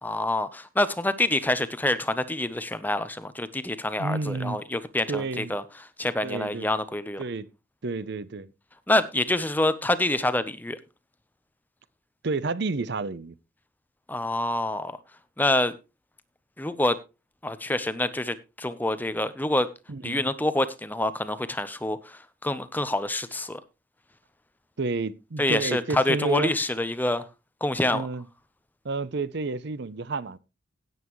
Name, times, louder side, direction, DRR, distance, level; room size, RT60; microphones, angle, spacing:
voice 1, 0.0-5.6 6.0-7.2 8.9-10.8 14.1-15.0 15.4-15.7 16.6-17.0 17.4-19.7 20.0-23.6 25.4-27.2 27.6-28.1, left 1 dB, 10° left, 0.7 m, -26 dB
voice 2, 4.0-4.6 5.1-5.5 6.2-6.7 7.2-7.5 7.8-8.5 12.2-13.3 19.9-20.2 24.8-26.5 27.9-28.2 28.8-30.4, right 3 dB, 55° right, 0.6 m, -30 dB
17.0 x 8.0 x 3.1 m
head